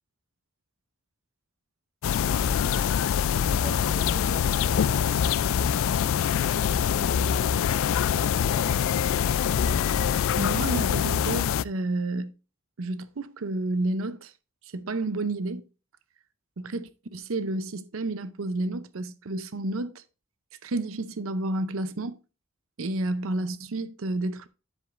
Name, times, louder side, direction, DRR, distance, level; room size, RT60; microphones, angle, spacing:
sound 1, 2.0-11.6, left 8 dB, 65° left, 0.3 m, -24 dB
voice 1, 3.5-5.2, left 1 dB, 30° left, 2.0 m, -44 dB
voice 2, 10.3-12.3 12.8-14.3 14.7-15.7 16.6-20.0 20.6-22.2 22.8-24.5, right 2 dB, 70° right, 0.6 m, -30 dB
9.9 x 7.8 x 2.5 m
head